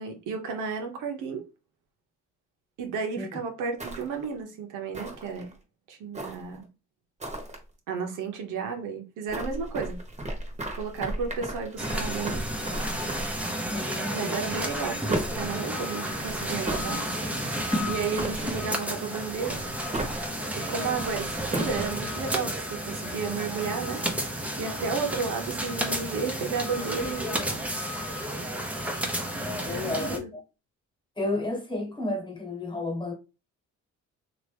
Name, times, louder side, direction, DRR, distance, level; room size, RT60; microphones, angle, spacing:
voice 1, 0.0-1.4 2.8-5.5 5.9-6.6 7.9-10.0 10.7-12.4 14.1-17.0 17.9-19.6 20.6-24.0 24.6-27.6 29.7-30.3, right 5 dB, 85° right, 0.9 m, -33 dB
sound 1, 3.8-4.3 4.9-5.5 6.1-6.6 7.2-7.6 9.3-13.4 14.5-15.5 16.1-16.9 17.6-18.7 19.3-20.2 20.9-21.9, right 1 dB, 25° right, 1.1 m, -35 dB
sound 2, 11.8-30.2, equal, 5° right, 0.7 m, -32 dB
voice 2, 13.7-14.4 18.4-18.5 29.6-30.4 31.2-33.1, left 2 dB, 15° left, 1.4 m, -32 dB
2.9 x 2.6 x 3.3 m
cardioid pair, 90°, 30 cm